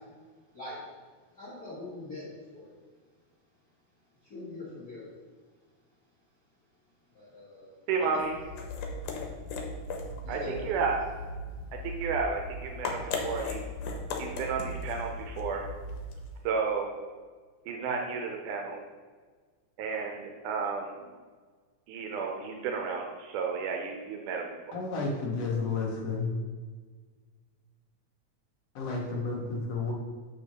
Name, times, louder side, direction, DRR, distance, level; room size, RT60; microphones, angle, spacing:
voice 1, 1.3-2.7 4.3-5.1 7.1-7.7 8.1-8.3 10.2-10.6, left 2 dB, 40° left, -10 dB, 1.6 m, -42 dB
voice 2, 7.9-8.4 10.3-11.0 11.8-13.6 14.2-15.7 16.4-16.9 17.7-18.8 19.8-21.0 21.9-24.6, right 5 dB, 85° right, 2 dB, 2.1 m, -32 dB
sound 1, 8.2-16.4, left 2 dB, 90° left, 2.3 m, -37 dB
voice 3, 24.7-26.3 28.7-29.9, left 4 dB, 65° left, -1 dB, 1.7 m, -31 dB
7.0 x 6.0 x 2.8 m, 1.5 s
omnidirectional pair, 3.5 m